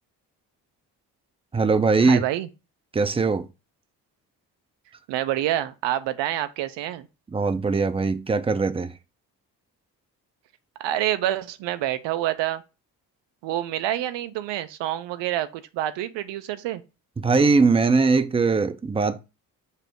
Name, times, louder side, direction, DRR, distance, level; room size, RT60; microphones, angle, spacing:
voice 1, 1.5-2.2 2.9-3.5 7.3-8.9 17.2-19.2, right 4 dB, 15° right, 0.5 m, -21 dB
voice 2, 2.0-2.5 5.1-7.1 10.8-12.6 13.4-16.8, right 13 dB, 65° right, 0.6 m, -27 dB
5.6 x 2.0 x 4.5 m
hypercardioid pair, 45°, 47 cm